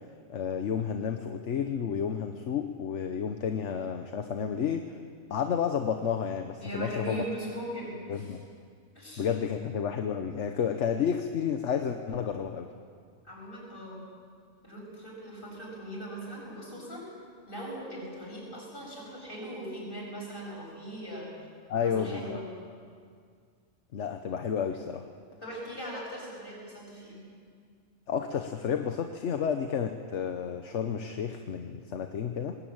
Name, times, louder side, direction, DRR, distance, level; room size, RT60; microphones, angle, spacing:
voice 1, 0.3-5.0 5.3-7.3 8.1-8.4 9.2-12.7 21.7-22.4 23.9-25.0 28.1-32.6, left 7 dB, 70° left, 6 dB, 1.3 m, -31 dB
voice 2, 6.6-8.4 9.0-9.3 13.2-14.0 14.6-17.0 17.5-21.3 21.7-22.4 25.4-27.2, right 1 dB, 45° left, -3 dB, 7.0 m, -40 dB
20.5 x 18.5 x 8.8 m, 2.1 s
omnidirectional pair, 1.3 m